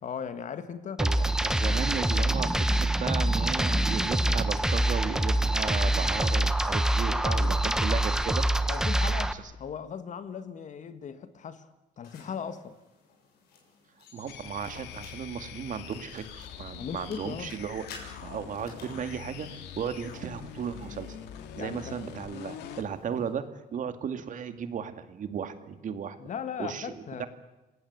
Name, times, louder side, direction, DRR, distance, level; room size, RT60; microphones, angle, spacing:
voice 1, 0.0-1.0 7.1-7.9 8.7-11.7 12.0-12.7 16.8-17.5 21.6-22.0 26.2-27.3, left 7 dB, 45° left, 1.8 m, -38 dB
sound 1, 1.0-9.3, right 1 dB, 5° right, 1.2 m, -25 dB
voice 2, 1.0-8.4 14.1-17.9 18.2-21.2 21.6-23.4 23.7-26.2 26.6-27.3, right 7 dB, 50° right, 2.2 m, -35 dB
sound 2, 12.0-23.3, left 5 dB, 70° left, 7.2 m, -55 dB
sound 3, 14.3-22.9, left 9 dB, 85° left, 2.4 m, -44 dB
27.5 x 18.5 x 8.1 m
cardioid pair, 110°, 17 cm